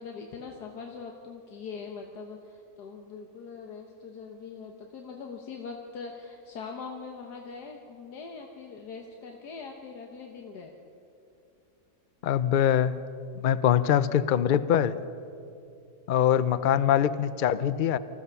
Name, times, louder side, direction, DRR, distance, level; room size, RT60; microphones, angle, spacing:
voice 1, 0.0-10.7, left 5 dB, 85° left, 2 dB, 1.8 m, -42 dB
voice 2, 12.2-13.0 13.4-15.0 16.1-18.0, left 10 dB, 60° left, 15 dB, 0.5 m, -23 dB
25.0 x 15.5 x 7.0 m, 2.6 s
omnidirectional pair, 1.7 m